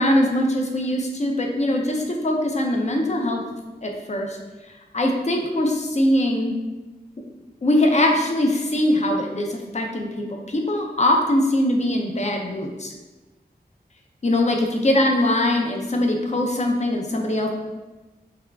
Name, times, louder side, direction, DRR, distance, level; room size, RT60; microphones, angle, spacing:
voice 1, 0.0-3.4 3.8-4.4 4.9-6.5 7.6-12.9 14.2-17.5, left 1 dB, 40° left, 2 dB, 0.6 m, -22 dB
3.4 x 2.3 x 3.4 m, 1.2 s
cardioid pair, 50°, 17 cm